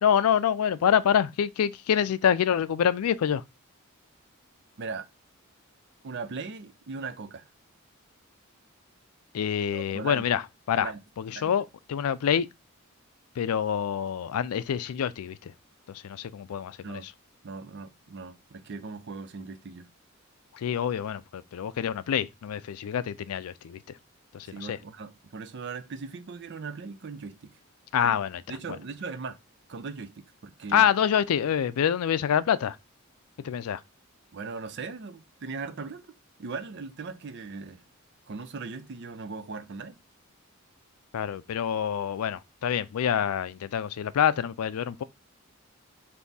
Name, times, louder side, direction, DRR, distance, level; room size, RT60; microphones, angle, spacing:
voice 1, 0.0-3.4 9.3-10.4 10.7-10.9 11.2-12.5 13.4-15.5 15.9-17.0 20.5-23.8 24.3-24.8 27.9-28.4 28.7-28.8 30.7-32.8 33.4-33.8 41.1-45.0, left 8 dB, 90° left, 0.4 m, -26 dB
voice 2, 6.0-7.5 9.7-10.3 10.8-11.0 11.3-11.5 16.8-17.1 17.4-19.9 24.4-27.5 28.0-28.2 28.5-29.4 29.7-30.9 34.3-36.1 36.4-37.8 38.3-40.0, right 4 dB, 50° right, 0.5 m, -39 dB
3.4 x 2.7 x 4.0 m
head